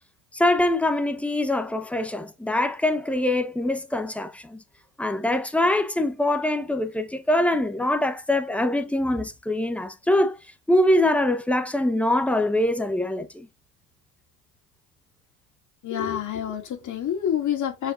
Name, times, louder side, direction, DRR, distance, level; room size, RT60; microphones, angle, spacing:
voice 1, 0.3-4.6 5.0-10.4 10.7-13.5, left 1 dB, 5° left, 1.1 m, -23 dB
voice 2, 15.8-17.9, left 9 dB, 40° left, 2.5 m, -27 dB
7.7 x 4.9 x 2.6 m
hypercardioid pair, 85°, 45 cm